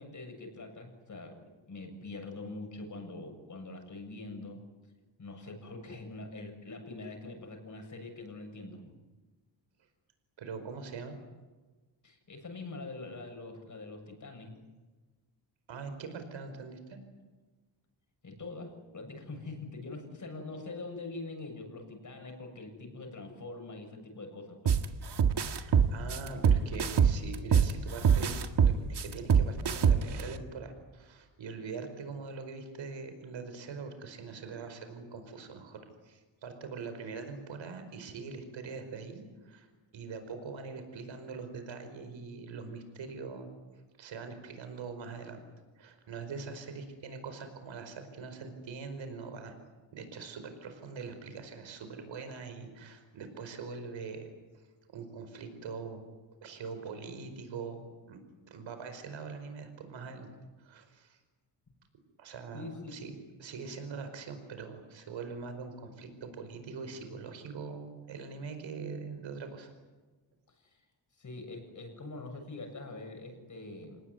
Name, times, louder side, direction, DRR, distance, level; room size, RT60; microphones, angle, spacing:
voice 1, 0.0-4.6 5.2-9.0 12.0-14.6 18.2-24.7 62.5-63.0 70.6-70.7 71.2-74.0, left 2 dB, 40° left, 4 dB, 7.1 m, -44 dB
voice 2, 10.4-11.2 15.7-17.0 25.4-39.7 39.9-43.5 44.0-45.4 45.8-49.5 49.9-54.3 54.9-56.1 56.4-58.2 58.5-60.3 60.6-61.2 62.2-63.1 63.4-69.7, right 5 dB, 80° right, 8 dB, 5.0 m, -43 dB
sound 1, 24.7-24.8 25.2-27.7 28.0-30.2, right 7 dB, 60° right, 1.8 m, -23 dB
27.5 x 19.5 x 9.6 m, 1.3 s
cardioid pair, 110°, 45 cm